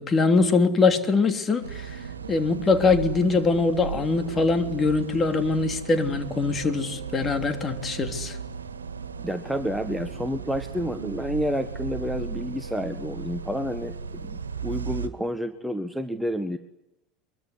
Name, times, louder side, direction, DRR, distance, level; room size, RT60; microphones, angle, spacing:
voice 1, 0.0-2.0 2.3-8.4, left 4 dB, 25° left, 6 dB, 3.2 m, -23 dB
sound 1, 1.6-15.1, right 6 dB, 80° right, 1.9 m, -36 dB
voice 2, 9.2-16.6, equal, ahead, 8 dB, 1.6 m, -30 dB
24.0 x 23.0 x 9.8 m, 0.89 s
figure-of-eight pair, 75°, 0 cm